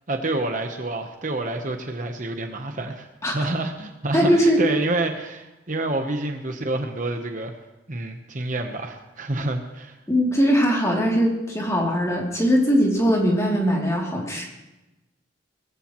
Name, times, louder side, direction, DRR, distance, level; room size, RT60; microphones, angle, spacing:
voice 1, 0.1-7.5 7.9-10.0, right 2 dB, 40° right, 5 dB, 1.0 m, -28 dB
voice 2, 4.1-4.6 10.1-14.5, equal, 15° left, -2 dB, 3.0 m, -20 dB
21.5 x 15.0 x 3.1 m, 1.0 s
head